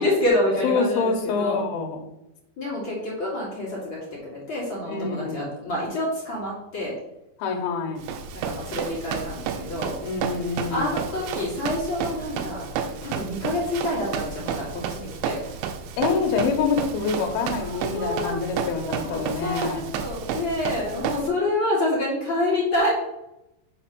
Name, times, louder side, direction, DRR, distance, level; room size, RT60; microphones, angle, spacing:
voice 1, 0.0-1.6 2.6-6.9 8.3-10.0 10.7-12.7 13.0-15.4 17.6-22.9, left 1 dB, 40° left, -6 dB, 1.9 m, -27 dB
voice 2, 0.6-2.0 4.9-5.5 7.4-8.1 10.0-10.9 16.0-19.8, left 5 dB, 70° left, 3 dB, 2.8 m, -26 dB
Run, 8.0-21.3, right 7 dB, 90° right, 2.9 m, -32 dB
6.7 x 4.3 x 6.0 m, 0.88 s
omnidirectional pair, 5.1 m